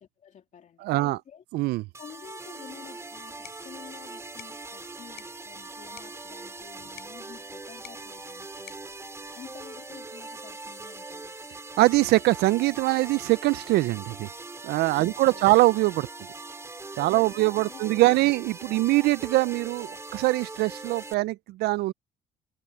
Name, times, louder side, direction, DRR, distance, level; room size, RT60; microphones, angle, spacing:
voice 1, 0.0-1.4 2.0-8.8 9.3-11.4 15.0-15.5 17.1-18.4, left 8 dB, 45° left, 2.8 m, -50 dB
voice 2, 0.8-1.2 1.5-1.8 11.8-14.3 14.6-16.1 17.0-21.9, right 19 dB, 75° right, 0.4 m, -23 dB
sound 1, 1.9-21.1, right 3 dB, 15° right, 2.7 m, -41 dB
sound 2, 3.1-10.1, left 13 dB, 75° left, 5.4 m, -54 dB
cardioid pair, 110°, 17 cm